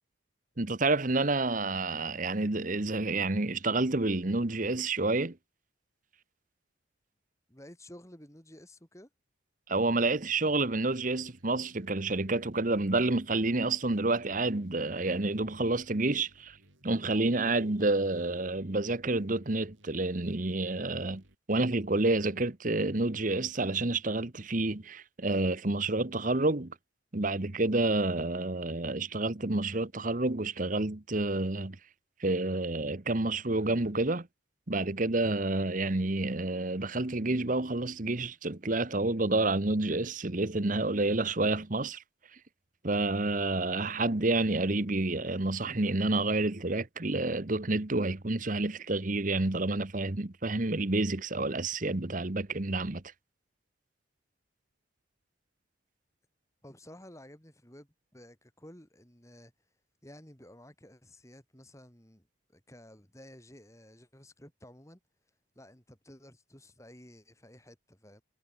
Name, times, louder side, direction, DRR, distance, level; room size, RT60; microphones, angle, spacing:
voice 1, 0.6-5.4 9.7-16.6 16.8-21.2 21.5-26.7 27.1-31.8 32.2-34.3 34.7-42.0 42.8-53.0, right 2 dB, 40° right, 1.1 m, -29 dB
voice 2, 7.5-9.1 56.6-59.5 60.0-65.0 65.6-68.2, left 1 dB, 15° left, 4.0 m, -53 dB
sound 1, 10.1-21.3, right 1 dB, 70° right, 6.3 m, -62 dB
head